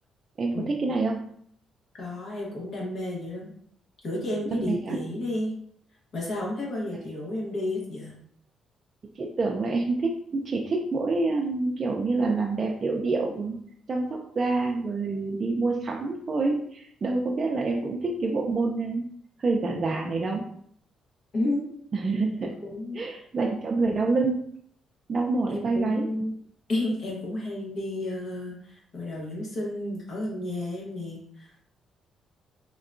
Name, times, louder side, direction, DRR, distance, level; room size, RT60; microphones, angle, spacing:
voice 1, 0.4-1.2 4.5-5.0 9.2-13.6 13.9-19.0 19.4-20.5 21.9-22.5 22.9-24.4 25.1-26.1, right 3 dB, 40° right, -1 dB, 0.3 m, -27 dB
voice 2, 1.9-3.5 4.0-5.5 6.1-8.1 21.3-21.7 22.4-23.0 25.5-26.3 26.7-31.7, left 1 dB, 60° left, -3 dB, 0.9 m, -32 dB
3.5 x 2.2 x 2.5 m, 0.65 s
cardioid pair, 90°, 0 cm